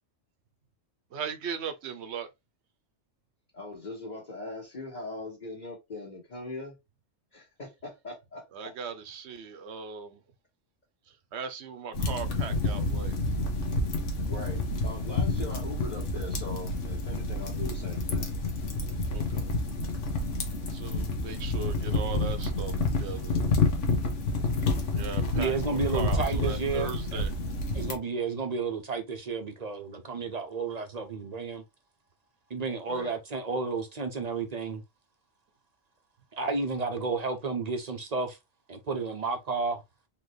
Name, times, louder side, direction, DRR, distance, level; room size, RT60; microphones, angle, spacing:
voice 1, 1.1-2.3 8.5-10.2 11.3-13.1 19.1-19.5 20.7-22.7 23.0-23.4 24.9-27.3, right 6 dB, 65° right, 0.9 m, -38 dB
voice 2, 3.5-6.7 7.3-8.9 14.2-18.3 26.1-26.3 32.8-33.1, left 2 dB, 35° left, 1.5 m, -41 dB
sound 1, 11.9-28.0, left 2 dB, 75° left, 1.3 m, -29 dB
voice 3, 25.3-27.2 27.7-31.6 32.5-34.8 36.3-38.4 38.7-39.8, right 4 dB, 40° right, 0.6 m, -32 dB
4.1 x 2.9 x 3.1 m
omnidirectional pair, 1.3 m